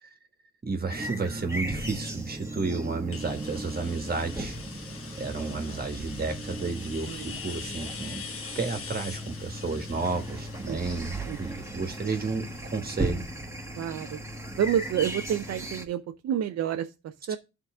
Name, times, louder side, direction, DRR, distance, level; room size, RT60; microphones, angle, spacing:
voice 1, 0.6-4.6 5.2-8.2 8.5-13.2, right 4 dB, 30° right, 1.6 m, -32 dB
sound 1, 0.9-15.8, right 1 dB, 10° right, 1.4 m, -37 dB
sound 2, 3.1-12.7, left 6 dB, 45° left, 1.2 m, -43 dB
voice 2, 7.1-7.4 10.7-10.8 11.3-11.4 13.8-14.2 14.6-17.4, right 9 dB, 55° right, 0.6 m, -29 dB
11.5 x 3.9 x 3.7 m
cardioid pair, 90°, 30 cm